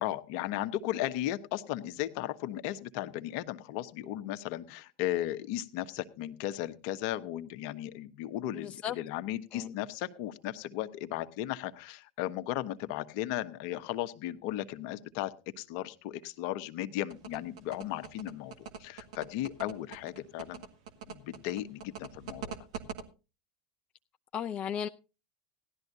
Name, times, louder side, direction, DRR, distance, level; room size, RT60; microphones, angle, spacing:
voice 1, 0.0-20.6 21.1-22.5, left 13 dB, 60° left, 1.1 m, -36 dB
voice 2, 8.6-8.9 9.5-9.7 24.3-24.9, left 9 dB, 35° left, 0.5 m, -35 dB
sound 1, 17.1-23.0, right 7 dB, 70° right, 1.8 m, -42 dB
17.0 x 12.0 x 2.7 m
hypercardioid pair, 95°, 3 cm